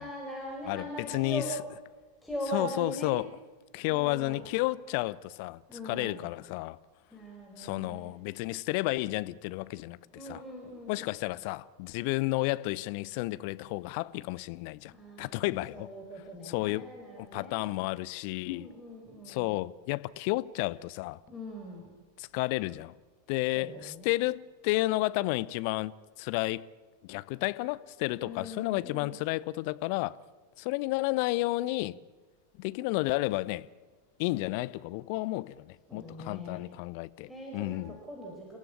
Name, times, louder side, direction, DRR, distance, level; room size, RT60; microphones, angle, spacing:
voice 1, 0.0-1.6 2.2-3.2 3.8-4.5 5.7-6.3 7.1-8.1 10.1-11.1 14.8-17.7 18.4-19.6 21.3-21.9 23.5-24.2 28.1-29.2 35.9-36.7 37.2-38.6, equal, ahead, 4.8 m, -41 dB
voice 2, 0.7-1.4 2.5-3.3 3.7-6.8 7.6-10.0 10.3-10.4 10.9-14.9 15.2-15.9 16.4-16.9 17.2-18.7 19.3-21.2 22.2-22.9 23.3-25.9 26.2-26.7 27.0-30.2 30.6-32.0 32.6-33.7 34.2-37.3 37.5-38.0, left 20 dB, 45° left, 0.7 m, -31 dB
29.0 x 15.5 x 8.6 m
figure-of-eight pair, 90°, 0 cm